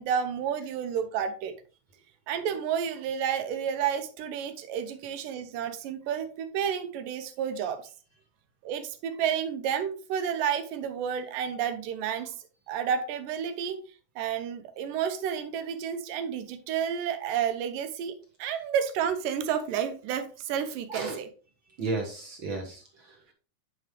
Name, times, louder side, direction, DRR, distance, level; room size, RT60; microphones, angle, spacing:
voice 1, 0.0-1.5 2.3-7.8 8.6-12.3 12.7-13.8 14.2-18.1 18.4-21.3, right 8 dB, 85° right, 9 dB, 2.4 m, -30 dB
voice 2, 20.9-21.2 21.8-23.3, right 3 dB, 60° right, 1 dB, 1.3 m, -34 dB
9.1 x 4.8 x 3.2 m, 0.36 s
omnidirectional pair, 3.9 m